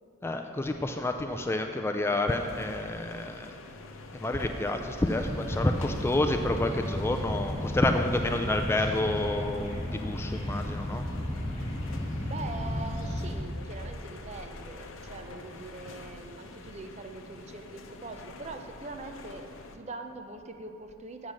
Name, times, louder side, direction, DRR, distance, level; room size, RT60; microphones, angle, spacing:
voice 1, 0.2-3.5 4.1-11.1, left 2 dB, 15° left, 5 dB, 0.3 m, -29 dB
sound 1, 2.3-19.8, left 2 dB, 90° left, 0.7 m, -47 dB
sound 2, 5.0-13.3, left 1 dB, 35° left, 2.4 m, -33 dB
voice 2, 11.9-21.3, right 3 dB, 35° right, 6 dB, 0.6 m, -43 dB
7.4 x 7.3 x 6.3 m, 2.9 s
head